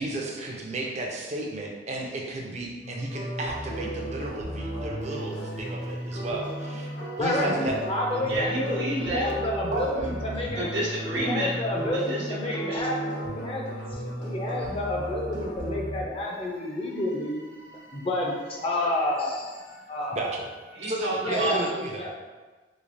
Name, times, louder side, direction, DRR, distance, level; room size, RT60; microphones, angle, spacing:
voice 1, 0.0-6.9 7.2-7.8 8.1-8.4 9.7-10.1 20.1-20.4 20.8-22.0, right 2 dB, 40° right, -1 dB, 0.5 m, -33 dB
sound 1, 2.8-21.0, equal, 65° left, 0.7 m, -38 dB
sound 2, 3.1-15.8, right 1 dB, 85° left, 1.2 m, -38 dB
voice 2, 7.2-10.6 11.1-17.4 17.7-19.6 19.9-20.2 21.2-21.6 22.0-22.1, left 1 dB, 30° left, -1 dB, 0.5 m, -30 dB
voice 3, 8.3-9.3 10.6-11.6 11.9-12.8 20.7-21.8, right 1 dB, 85° right, -5 dB, 1.0 m, -30 dB
3.5 x 3.1 x 2.6 m, 1.3 s
head